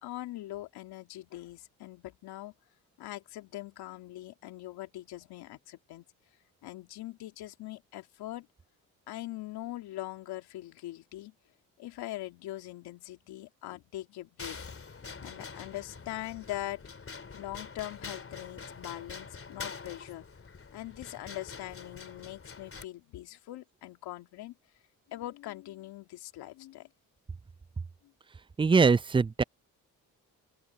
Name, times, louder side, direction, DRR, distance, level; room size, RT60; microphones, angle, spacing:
voice 1, 0.0-2.5 3.0-6.0 6.6-8.5 9.1-11.3 11.8-14.6 15.2-16.8 17.3-20.2 20.7-24.6 25.1-26.9, left 15 dB, 80° left, 2.7 m, -42 dB
sound 1, 14.4-22.9, left 5 dB, 35° left, 2.9 m, -45 dB
voice 2, 28.6-29.4, right 4 dB, 15° right, 0.4 m, -22 dB
open air
supercardioid pair, 60°, 38 cm